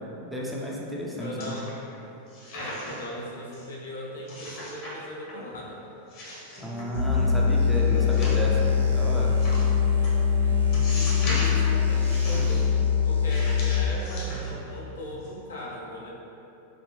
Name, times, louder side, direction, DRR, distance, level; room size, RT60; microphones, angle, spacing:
voice 1, 0.0-1.6 6.6-9.4, equal, 5° right, -4 dB, 0.5 m, -32 dB
voice 2, 1.2-1.7 2.5-5.8 7.9-8.4 10.4-12.7 13.0-16.1, left 1 dB, 65° left, -3 dB, 0.5 m, -39 dB
sound 1, 1.4-2.0 2.3-3.1 3.5-3.6 4.3-4.9 5.3-5.7 6.1-7.2 8.0-8.7 9.4-9.6 10.0-10.1 10.7-11.6 12.0-12.6 13.3-14.8 15.1-15.3, left 1 dB, 45° left, 0.9 m, -38 dB
Wind instrument woodwind instrument, 6.5-14.7, right 3 dB, 80° left, 1.2 m, -44 dB
sound 2, 6.9-13.8, left 6 dB, 80° right, 0.4 m, -23 dB
3.9 x 2.3 x 3.1 m, 3.0 s
figure-of-eight pair, 90°, 0 cm